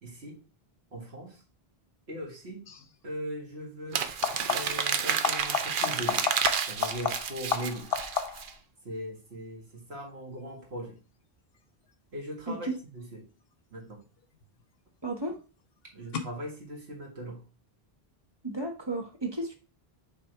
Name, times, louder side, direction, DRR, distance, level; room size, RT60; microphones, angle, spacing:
voice 1, 0.0-0.4 0.9-1.4 2.1-2.6 3.0-4.1 4.5-8.0 8.8-11.0 12.1-12.7 12.9-13.2 13.7-14.0 15.9-17.4, equal, 85° right, 0 dB, 2.0 m, -39 dB
sound 1, 2.7-2.9 4.1-4.9 5.2-8.6 14.0-14.6 16.1-16.2, left 7 dB, 70° left, 0.9 m, -32 dB
Crumpling crinkling, 3.9-8.5, right 7 dB, 60° right, 0.8 m, -30 dB
voice 2, 15.0-15.4 18.4-19.5, right 2 dB, 25° right, 1 dB, 1.2 m, -33 dB
5.8 x 3.6 x 4.5 m, 0.33 s
omnidirectional pair, 1.0 m